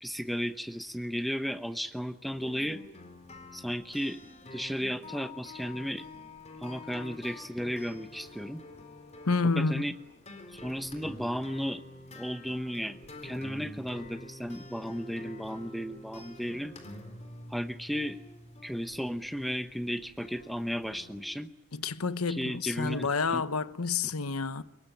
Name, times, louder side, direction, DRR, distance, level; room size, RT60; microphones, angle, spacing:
voice 1, 0.0-2.8 3.5-4.2 4.5-6.0 6.6-8.6 9.6-9.9 10.5-11.8 12.2-13.0 13.2-16.8 17.5-18.2 18.6-21.5 22.3-23.4, equal, ahead, 0.9 m, -34 dB
sound 1, 2.3-21.2, left 2 dB, 30° left, 4.0 m, -48 dB
voice 2, 9.3-9.8 21.7-24.6, left 4 dB, 85° left, 1.1 m, -29 dB
25.0 x 22.5 x 9.2 m
head